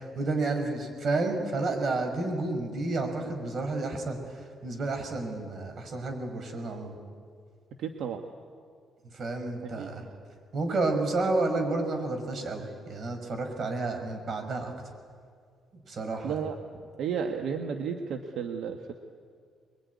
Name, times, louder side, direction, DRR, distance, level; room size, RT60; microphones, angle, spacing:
voice 1, 0.0-7.0 9.1-10.1 10.5-14.7 15.9-16.4, right 2 dB, 55° right, 5 dB, 5.7 m, -31 dB
voice 2, 7.8-8.2 9.8-9.9 16.2-16.6 17.0-18.9, right 7 dB, 80° right, 5 dB, 1.5 m, -32 dB
24.0 x 22.5 x 9.7 m, 2.1 s
cardioid pair, 90°, 0 cm